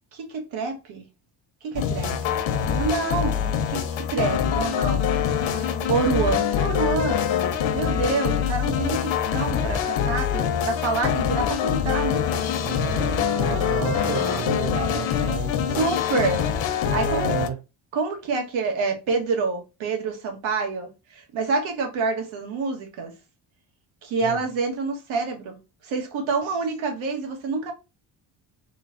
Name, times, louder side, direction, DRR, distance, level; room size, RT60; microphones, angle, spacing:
voice 1, 0.1-1.0 1.6-2.3 2.6-3.8 4.1-7.3 7.7-12.3 15.7-16.5 16.9-17.2 17.9-23.1 24.0-25.6 25.8-27.7, right 4 dB, 85° right, 1.5 m, -27 dB
sound 1, 1.7-17.5, left 8 dB, 75° left, 0.8 m, -24 dB
voice 2, 1.7-2.0 12.6-15.9 16.8-17.6 24.2-24.4 26.4-26.6, right 8 dB, 70° right, 0.8 m, -32 dB
sound 2, 11.9-14.4, right 6 dB, 40° right, 0.5 m, -37 dB
3.7 x 3.2 x 2.6 m
cardioid pair, 125°, 46 cm